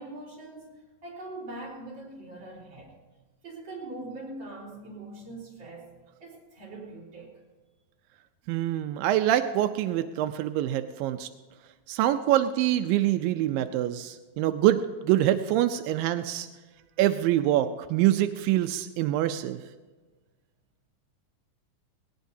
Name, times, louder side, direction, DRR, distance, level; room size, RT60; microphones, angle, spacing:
voice 1, 0.0-2.9 3.4-5.9 6.2-7.4, right 2 dB, 35° right, -4 dB, 4.5 m, -42 dB
voice 2, 8.5-11.3 11.9-16.5 17.0-19.6, right 13 dB, 90° right, 9 dB, 2.3 m, -25 dB
19.5 x 18.5 x 2.7 m, 1.3 s
omnidirectional pair, 4.0 m